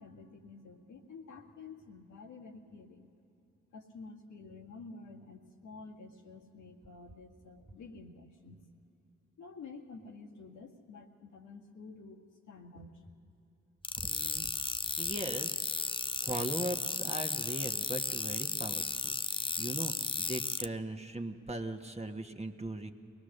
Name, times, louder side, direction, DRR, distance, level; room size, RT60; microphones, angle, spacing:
voice 1, 0.0-3.1 3.7-8.7 9.4-13.1 14.3-14.8, left 4 dB, 80° left, -2 dB, 1.9 m, -50 dB
sound 1, 13.8-20.7, left 4 dB, 20° left, 0.4 m, -34 dB
voice 2, 14.0-14.5 15.0-22.9, right 1 dB, 20° right, 4 dB, 1.5 m, -39 dB
22.5 x 18.5 x 6.6 m, 2.8 s
supercardioid pair, 40°, 30 cm